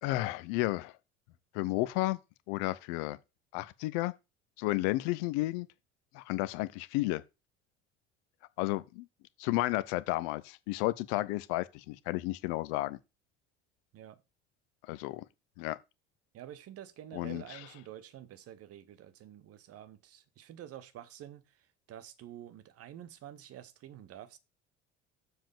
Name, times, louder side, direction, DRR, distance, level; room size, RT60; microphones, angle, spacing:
voice 1, 0.0-0.9 1.5-2.2 2.5-3.2 3.5-4.1 4.6-5.7 6.1-7.2 8.6-9.1 9.4-13.0 14.9-15.2 15.6-15.8 17.1-17.4, left 18 dB, 55° left, 0.7 m, -32 dB
voice 2, 16.3-24.4, right 11 dB, 40° right, 1.1 m, -49 dB
7.4 x 4.3 x 6.7 m
figure-of-eight pair, 60°, 36 cm